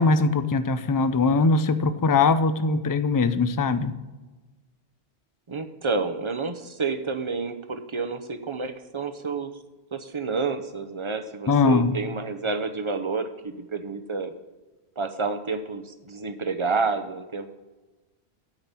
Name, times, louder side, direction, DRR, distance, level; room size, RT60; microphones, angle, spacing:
voice 1, 0.0-3.9 11.5-11.9, left 4 dB, 30° left, 11 dB, 0.3 m, -21 dB
voice 2, 5.5-9.5 9.9-14.3 15.0-17.5, right 4 dB, 30° right, 8 dB, 0.7 m, -29 dB
9.0 x 5.9 x 8.2 m, 1.2 s
omnidirectional pair, 1.1 m